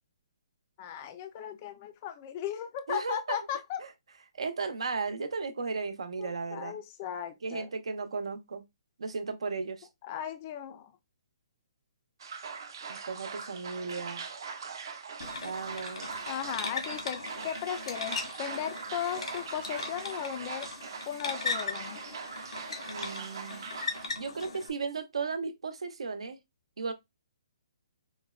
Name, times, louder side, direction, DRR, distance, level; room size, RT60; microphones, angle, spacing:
voice 1, 0.8-3.8 6.2-7.7 10.0-10.9 16.3-20.7 21.1-22.0, left 9 dB, 20° left, 0.3 m, -36 dB
voice 2, 2.9-3.4 3.8-3.9 4.3-6.8 7.4-8.6 9.0-9.9 12.9-14.3 15.4-16.1 22.9-23.7 24.2-26.4 26.8-26.9, right 4 dB, 80° right, 0.7 m, -35 dB
sound 1, 12.2-24.1, right 5 dB, 45° right, 0.6 m, -41 dB
sound 2, 15.2-24.7, left 3 dB, 85° left, 1.1 m, -39 dB
4.5 x 2.1 x 2.3 m
hypercardioid pair, 175°, 3 cm